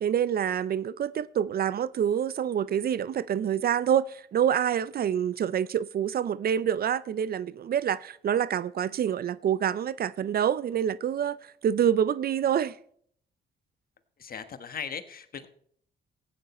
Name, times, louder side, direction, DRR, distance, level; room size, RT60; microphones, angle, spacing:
voice 1, 0.0-11.4 11.6-12.8, right 9 dB, 50° right, 0.5 m, -27 dB
voice 2, 14.2-15.5, left 7 dB, 50° left, 1.3 m, -38 dB
15.0 x 9.3 x 4.3 m
cardioid pair, 90°, 20 cm